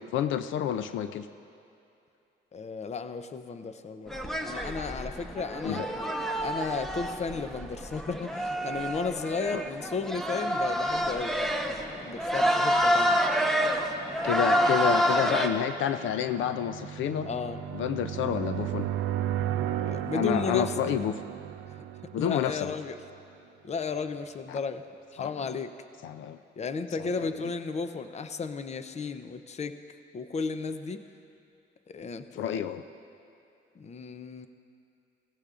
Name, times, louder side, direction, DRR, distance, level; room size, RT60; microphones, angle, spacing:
voice 1, 0.1-1.3 5.6-5.9 9.5-9.6 14.2-17.3 17.7-18.9 20.1-21.2 22.1-22.7 24.5-24.6 25.2-25.5 26.0-26.4 27.0-27.3 32.4-32.8, left 10 dB, 80° left, 11 dB, 0.5 m, -29 dB
voice 2, 2.5-4.2 4.4-6.1 6.4-13.2 17.3-17.6 19.7-20.7 21.7-21.8 22.2-23.0 23.6-24.8 25.1-25.7 26.6-29.8 30.1-31.1 31.9-32.6 33.8-34.5, left 5 dB, 35° left, 10 dB, 0.6 m, -34 dB
sound 1, 4.1-15.5, equal, ahead, 0.9 m, -28 dB
sound 2, 12.4-23.2, right 11 dB, 85° right, 0.5 m, -35 dB
17.0 x 15.5 x 2.5 m, 2.7 s
cardioid pair, 90°, 20 cm